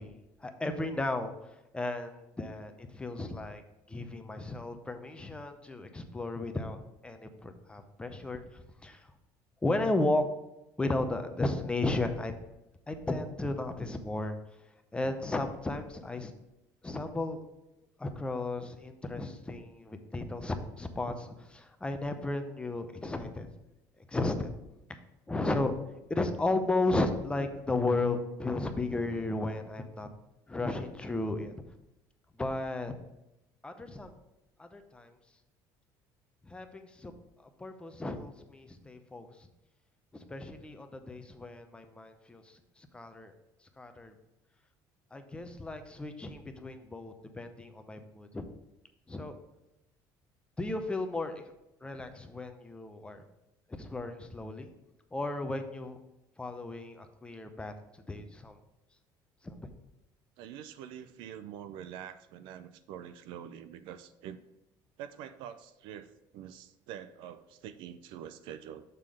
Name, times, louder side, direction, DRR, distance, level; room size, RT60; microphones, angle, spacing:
voice 1, 0.0-1.3 1.7-3.6 3.9-6.8 7.0-9.1 9.6-10.3 10.8-12.3 12.9-14.4 14.9-16.3 16.8-17.4 18.0-23.5 24.1-24.5 25.3-25.7 26.1-30.1 30.5-31.5 32.4-32.9 33.6-34.1 34.6-35.1 36.4-37.1 37.6-39.3 40.1-43.3 43.8-44.1 45.1-48.5 49.1-49.4 50.6-51.4 51.8-53.2 53.8-54.7 55.1-56.0 56.4-58.5 59.4-59.5, left 2 dB, 10° left, 7 dB, 0.7 m, -34 dB
voice 2, 60.4-64.4 65.0-66.1 66.3-68.8, right 9 dB, 75° right, 12 dB, 0.5 m, -45 dB
6.7 x 3.7 x 6.2 m, 0.92 s
cardioid pair, 120°, 9 cm